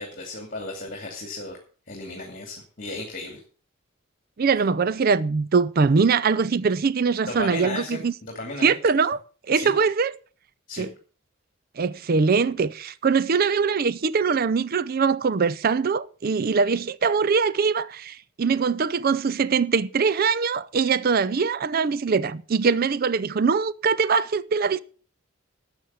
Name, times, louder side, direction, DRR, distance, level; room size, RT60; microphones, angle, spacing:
voice 1, 0.0-1.6 1.9-3.4 7.3-8.7 9.5-9.7 10.7-10.9, left 2 dB, 40° left, 2.6 m, -35 dB
voice 2, 4.4-8.1 8.6-9.2 9.5-10.1 10.8-10.9 11.8-24.8, right 5 dB, 45° right, 0.5 m, -22 dB
12.0 x 7.0 x 7.0 m
head